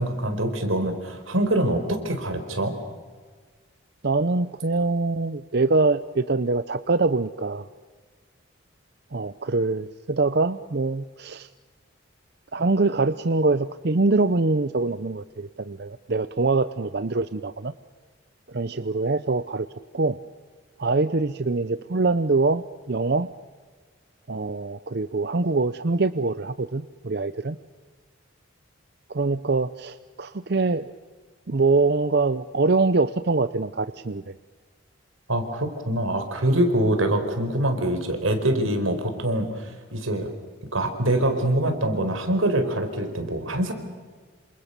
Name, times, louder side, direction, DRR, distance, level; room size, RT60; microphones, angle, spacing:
voice 1, 0.0-2.7 35.3-40.3 40.7-43.7, right 1 dB, 90° right, 7 dB, 4.5 m, -24 dB
voice 2, 4.0-7.7 9.1-11.5 12.5-17.7 18.5-19.7 19.9-20.2 20.8-23.3 24.3-27.6 29.1-30.9 31.5-34.2, right 3 dB, 55° right, 13 dB, 0.7 m, -24 dB
28.0 x 27.0 x 6.8 m, 1.5 s
head